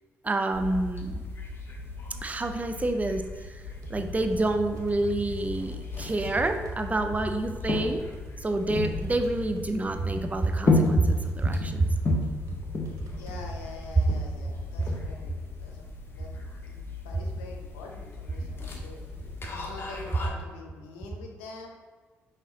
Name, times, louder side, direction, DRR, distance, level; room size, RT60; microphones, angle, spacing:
voice 1, 0.2-1.2 2.2-3.2 3.9-8.0 8.4-11.9, right 2 dB, 25° right, 6 dB, 0.5 m, -27 dB
sound 1, 0.5-20.3, left 3 dB, 40° left, 0.9 m, -34 dB
sound 2, 3.7-16.3 16.6-16.7 16.9-18.7 19.0-19.1 19.4-20.3, right 1 dB, 60° right, 0.7 m, -42 dB
voice 2, 13.2-19.0 19.4-21.7, left 3 dB, 90° left, 1 dB, 0.6 m, -45 dB
5.4 x 3.0 x 2.8 m, 1.5 s
hypercardioid pair, 55°, 6 cm